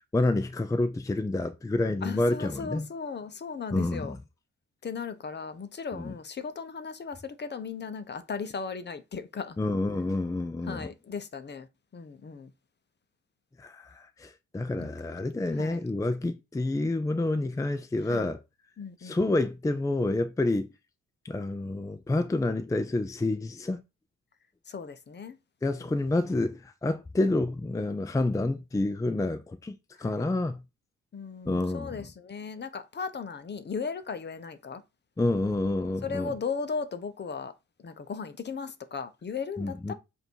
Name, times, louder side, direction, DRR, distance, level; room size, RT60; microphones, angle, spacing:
voice 1, 0.1-2.9 3.7-4.2 5.9-6.1 9.6-10.9 13.6-13.9 14.2-18.4 19.0-20.7 21.2-23.8 25.6-30.6 31.5-32.0 35.2-36.3 39.6-39.9, left 2 dB, 10° left, 0.6 m, -28 dB
voice 2, 2.0-4.2 4.8-9.6 10.7-11.7 11.9-12.5 14.8-15.1 15.5-15.8 18.0-18.3 18.8-19.2 24.7-25.4 25.8-26.0 30.0-30.2 31.1-34.8 36.0-37.5 37.8-39.9, left 5 dB, 35° left, 0.9 m, -37 dB
7.8 x 2.8 x 4.6 m
cardioid pair, 90°, 30 cm